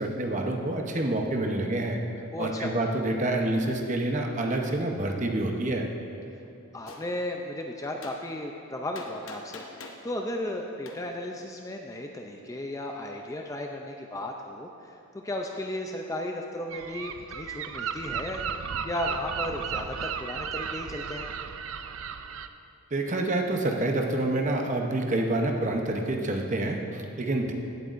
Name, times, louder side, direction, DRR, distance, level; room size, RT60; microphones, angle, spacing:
voice 1, 0.0-2.0 2.4-5.9 22.9-27.5, right 2 dB, 35° right, 2 dB, 0.7 m, -27 dB
voice 2, 2.3-2.7 6.7-18.5 18.8-21.3, left 1 dB, 15° left, 2 dB, 0.4 m, -35 dB
Gunshot gunfire, 6.9-7.0 8.0-8.2 8.9-10.0 10.9-11.0, left 3 dB, 65° left, 0.9 m, -43 dB
Gull seagull, 16.7-22.5, right 7 dB, 65° right, 0.4 m, -34 dB
16.0 x 8.0 x 2.5 m, 2.9 s
head